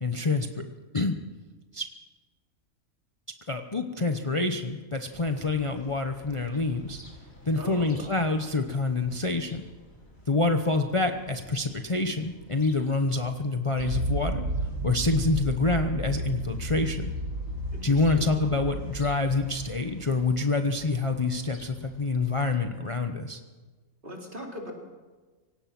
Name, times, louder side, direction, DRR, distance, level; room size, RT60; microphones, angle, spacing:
voice 1, 0.0-0.6 0.9-1.1 1.7-1.9 3.5-7.0 7.4-9.6 10.3-14.4 14.8-17.1 17.8-23.4, left 3 dB, 25° left, 5 dB, 0.9 m, -27 dB
sound 1, 5.1-22.6, equal, 45° left, 4.2 m, -52 dB
voice 2, 7.6-7.9 17.7-18.3 24.0-24.7, equal, 35° right, 0 dB, 3.9 m, -40 dB
sound 2, 13.8-20.3, right 1 dB, 60° right, 2.0 m, -33 dB
24.5 x 17.5 x 6.0 m, 1.3 s
omnidirectional pair, 1.4 m